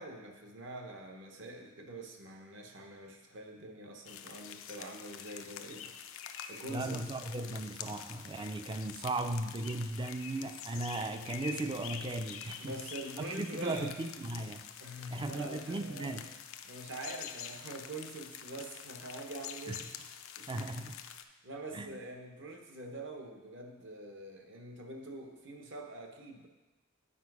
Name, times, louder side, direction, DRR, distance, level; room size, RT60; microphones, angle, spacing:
voice 1, 0.0-5.9 6.5-7.0 12.6-14.0 14.8-16.2 16.6-20.0 20.4-20.6 21.4-26.5, right 1 dB, 65° right, 3 dB, 1.0 m, -45 dB
sound 1, 4.1-21.2, left 9 dB, 85° left, 0.5 m, -46 dB
voice 2, 6.7-12.7 13.3-14.7 15.1-16.3 19.7-19.8 20.5-21.0 21.7-22.0, right 2 dB, 25° right, 9 dB, 0.4 m, -37 dB
8.7 x 4.7 x 4.8 m, 1.1 s
head